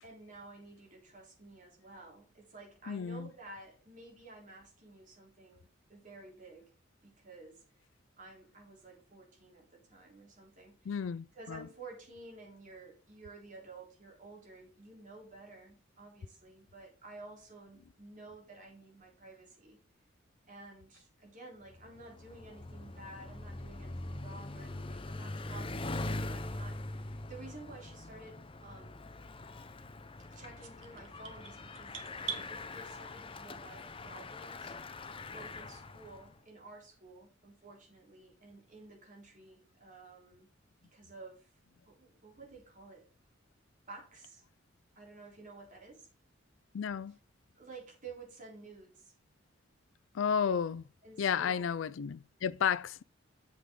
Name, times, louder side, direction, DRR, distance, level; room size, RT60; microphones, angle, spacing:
voice 1, 0.0-6.7 7.0-7.8 8.2-10.9 11.3-19.8 20.5-29.1 30.3-35.0 35.3-40.5 40.9-41.5 41.8-43.0 43.9-44.4 45.0-46.1 47.6-49.1 51.0-51.7, right 3 dB, 40° right, 3.6 m, -52 dB
voice 2, 2.9-3.3 10.9-11.7 46.7-47.2 50.1-50.9 51.2-53.0, left 7 dB, 75° left, 0.4 m, -32 dB
Bicycle, 21.7-36.3, left 2 dB, 30° left, 0.6 m, -43 dB
sound 1, 30.6-32.5, right 8 dB, 75° right, 1.5 m, -42 dB
8.5 x 7.6 x 3.7 m
head